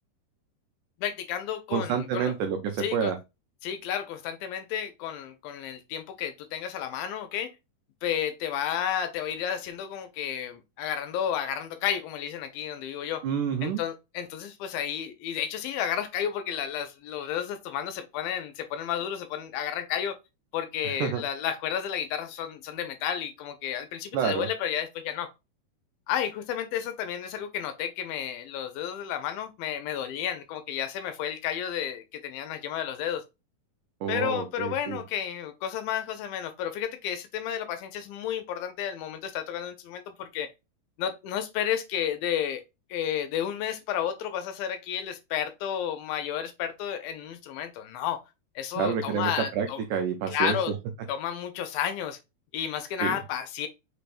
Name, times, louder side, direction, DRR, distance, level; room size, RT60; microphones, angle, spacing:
voice 1, 1.0-2.3 2.8-3.1 3.6-7.5 8.0-13.2 13.6-20.2 20.5-25.3 26.1-33.2 34.1-40.5 41.0-42.6 42.9-48.2 48.6-49.8 50.3-50.7 51.1-52.2 52.5-53.7, left 9 dB, 80° left, 2.2 m, -32 dB
voice 2, 1.7-3.2 13.2-13.8 20.8-21.2 24.1-24.5 34.0-35.0 48.8-50.6 53.0-53.2, right 7 dB, 85° right, 1.7 m, -28 dB
5.8 x 3.4 x 2.5 m
omnidirectional pair, 4.4 m